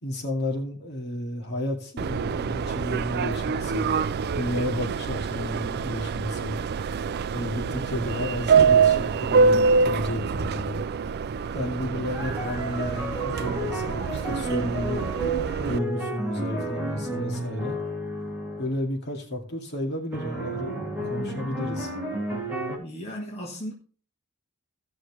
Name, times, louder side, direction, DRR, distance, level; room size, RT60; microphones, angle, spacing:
voice 1, 0.0-3.9 4.3-6.6 7.3-10.8 11.5-15.0 15.6-17.8 18.6-21.9, left 1 dB, 50° left, 2.4 m, -32 dB
Subway metro underground, 2.0-15.8, right 5 dB, 50° right, 0.4 m, -25 dB
sound 1, 12.1-18.7 20.1-22.8, right 1 dB, 10° right, 3.1 m, -32 dB
voice 2, 22.8-23.7, equal, 30° left, 1.6 m, -36 dB
16.5 x 6.2 x 3.4 m
head